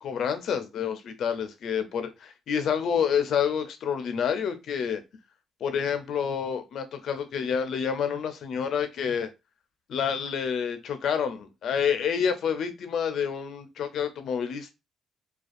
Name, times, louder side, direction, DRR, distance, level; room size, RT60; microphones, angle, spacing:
voice 1, 0.0-5.0 5.6-9.3 9.9-14.7, left 7 dB, 70° left, 0.5 m, -28 dB
2.5 x 2.3 x 2.4 m
cardioid pair, 90°, 0 cm